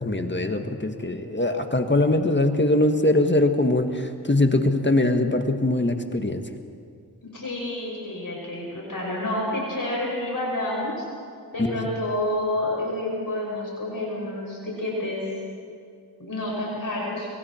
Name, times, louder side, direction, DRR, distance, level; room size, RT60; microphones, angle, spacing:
voice 1, 0.0-6.4 11.6-11.8, left 2 dB, 30° left, 6 dB, 1.7 m, -22 dB
voice 2, 7.2-11.0 11.5-15.4 16.2-17.3, left 1 dB, 60° left, -4 dB, 6.2 m, -29 dB
28.0 x 24.0 x 4.5 m, 2.3 s
wide cardioid pair, 50°, 38 cm